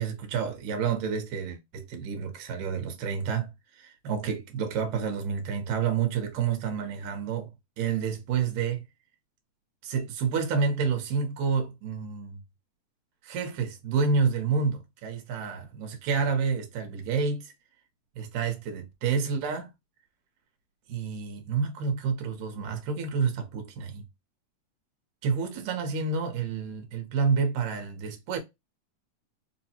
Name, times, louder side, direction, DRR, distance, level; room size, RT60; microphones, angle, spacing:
voice 1, 0.0-7.5 7.8-8.8 9.8-12.4 13.2-17.5 18.2-19.7 20.9-24.0 25.2-28.4, right 5 dB, 70° right, 2.2 m, -29 dB
4.9 x 2.2 x 2.8 m
omnidirectional pair, 3.6 m